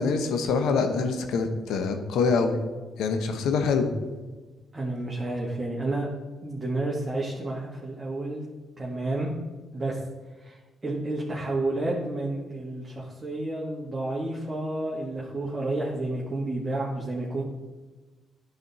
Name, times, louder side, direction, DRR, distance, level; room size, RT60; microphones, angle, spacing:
voice 1, 0.0-2.6 3.0-3.9, left 4 dB, 85° left, 6 dB, 0.8 m, -25 dB
voice 2, 4.7-6.1 6.4-8.4 8.8-9.3 9.7-10.0 10.4-10.6 10.8-17.4, right 2 dB, 25° right, -5 dB, 1.6 m, -30 dB
11.0 x 4.2 x 4.1 m, 1.3 s
cardioid pair, 75°, 0 cm